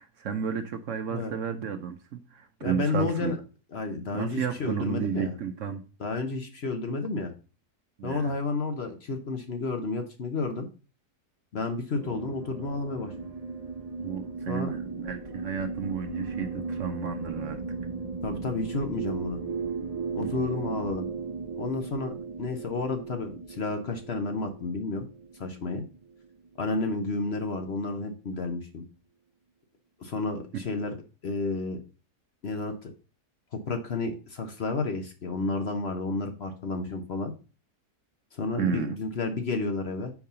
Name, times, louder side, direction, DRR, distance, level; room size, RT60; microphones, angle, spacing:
voice 1, 0.0-3.4 4.1-5.8 8.0-8.4 14.0-17.6 20.2-20.6 30.5-30.6 38.6-39.0, right 7 dB, 65° right, 8 dB, 0.9 m, -32 dB
voice 2, 2.6-3.4 3.7-5.3 6.0-7.3 8.0-10.7 11.5-13.1 14.5-14.7 18.2-19.4 20.1-21.1 21.6-25.1 25.4-25.8 26.6-28.8 30.0-31.8 32.4-32.9 33.7-37.3 38.3-40.1, left 3 dB, 50° left, 5 dB, 1.0 m, -31 dB
sound 1, 12.0-26.5, right 4 dB, 30° right, 0.7 m, -36 dB
5.3 x 4.7 x 5.4 m, 0.34 s
omnidirectional pair, 1.7 m